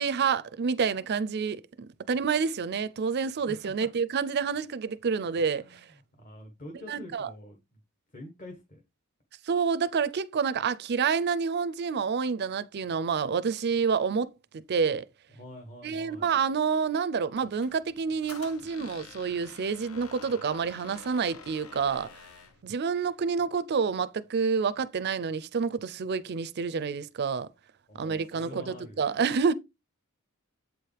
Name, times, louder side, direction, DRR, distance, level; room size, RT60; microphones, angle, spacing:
voice 1, 0.0-1.6 2.1-5.9 6.9-7.3 9.4-15.1 15.8-22.1 22.6-27.5 27.9-29.5, right 5 dB, 50° right, 0.4 m, -28 dB
voice 2, 3.5-3.9 5.6-5.8 6.1-7.6 8.1-8.8 15.3-16.3 27.9-29.0, left 1 dB, 40° left, 1.3 m, -46 dB
Squeak, 17.3-22.6, left 5 dB, 75° left, 0.8 m, -49 dB
8.0 x 4.7 x 3.3 m
head